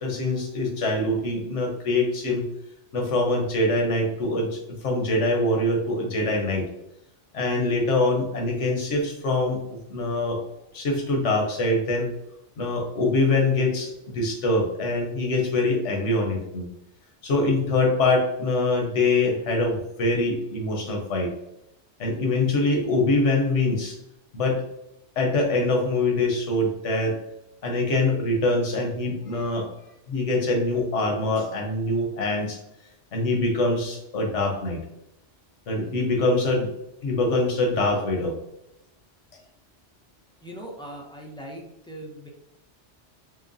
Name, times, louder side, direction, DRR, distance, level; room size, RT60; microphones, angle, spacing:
voice 1, 0.0-2.4 2.9-6.7 7.3-9.6 9.9-10.4 10.7-12.1 12.6-16.6 17.2-21.3 22.0-24.0 24.3-24.6 25.2-27.1 27.6-29.7 30.1-32.6 33.1-34.8 35.7-36.7 37.0-38.3, left 2 dB, 85° left, 1 dB, 1.3 m, -24 dB
voice 2, 40.4-42.3, right 1 dB, 5° left, -1 dB, 0.5 m, -40 dB
6.1 x 2.2 x 2.6 m, 0.85 s
omnidirectional pair, 1.2 m